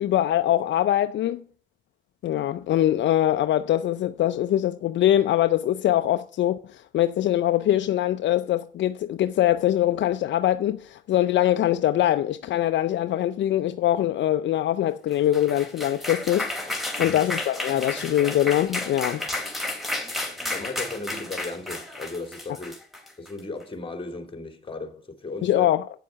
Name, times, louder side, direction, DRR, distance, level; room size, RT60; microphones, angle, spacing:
voice 1, 0.0-1.4 2.2-19.3 25.4-25.9, left 12 dB, 65° left, 0.5 m, -23 dB
sound 1, 15.1-23.4, left 2 dB, ahead, 2.7 m, -32 dB
voice 2, 20.5-22.7 23.2-25.7, left 3 dB, 25° left, 2.4 m, -35 dB
8.9 x 7.5 x 5.6 m
cardioid pair, 90°, 20 cm